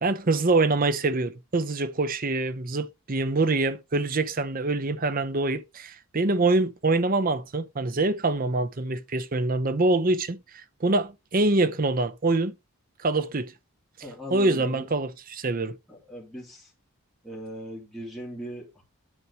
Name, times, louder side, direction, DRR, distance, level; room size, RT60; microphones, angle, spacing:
voice 1, 0.0-10.4 10.8-12.5 13.0-13.5 14.3-15.8, right 2 dB, 40° right, 0.7 m, -25 dB
voice 2, 14.0-14.9 15.9-16.7 17.2-18.8, equal, ahead, 3.0 m, -39 dB
9.8 x 4.6 x 4.8 m
head